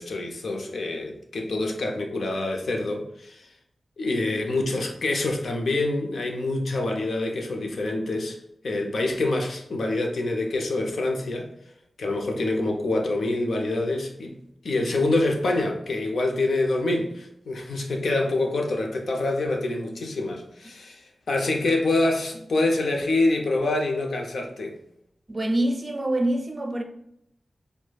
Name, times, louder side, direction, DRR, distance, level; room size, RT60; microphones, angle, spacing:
voice 1, 0.0-3.5 4.0-8.4 8.6-11.5 12.0-14.4 14.6-24.8, left 2 dB, 75° left, 0.6 m, -26 dB
voice 2, 25.3-26.8, right 1 dB, 30° right, 0.4 m, -25 dB
4.7 x 2.2 x 2.3 m
wide cardioid pair, 110°, 0 cm